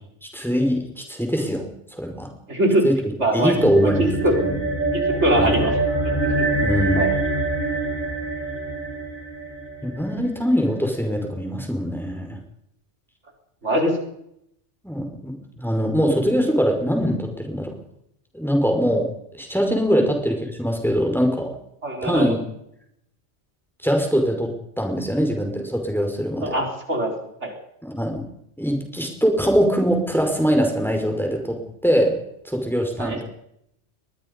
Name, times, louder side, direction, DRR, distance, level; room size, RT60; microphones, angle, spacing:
voice 1, 0.3-1.7 1.9-2.3 2.8-4.1 4.4-4.6 5.4-5.5 6.6-7.0 9.8-12.4 14.8-17.8 18.3-19.1 19.3-21.5 22.0-22.4 23.8-26.6 27.8-28.2 28.6-32.2 32.4-33.2, equal, ahead, 3 dB, 5.2 m, -22 dB
voice 2, 2.5-2.8 3.2-3.5 3.8-3.9 4.2-4.4 4.9-5.7 6.2-6.5 7.0-7.1 13.6-13.9 19.9-20.0 21.8-22.3 26.4-27.1 27.4-27.5 33.0-33.2, right 1 dB, 75° right, 2 dB, 4.8 m, -22 dB
sound 1, 3.3-10.0, right 2 dB, 20° left, 7.0 m, -25 dB
22.5 x 21.5 x 5.4 m, 0.75 s
omnidirectional pair, 1.2 m